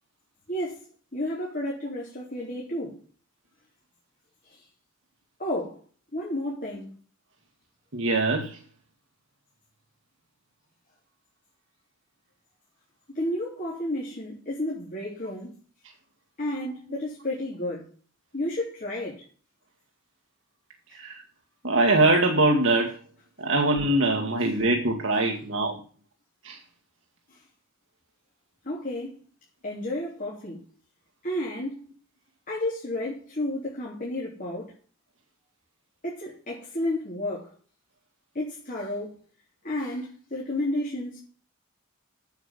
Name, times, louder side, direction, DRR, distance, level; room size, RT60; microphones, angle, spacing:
voice 1, 0.5-0.8 1.1-3.0 5.4-5.8 6.1-6.9 13.1-15.5 16.4-17.8 18.3-19.2 28.7-29.2 29.6-30.6 31.2-31.8 32.5-34.7 36.0-37.5 38.4-39.1 39.6-41.2, left 1 dB, 40° left, 3.6 m, -31 dB
voice 2, 7.9-8.6 20.9-21.2 21.6-22.9 23.4-25.8 26.4-26.6, right 2 dB, 65° right, 1.8 m, -23 dB
9.2 x 8.0 x 8.2 m
head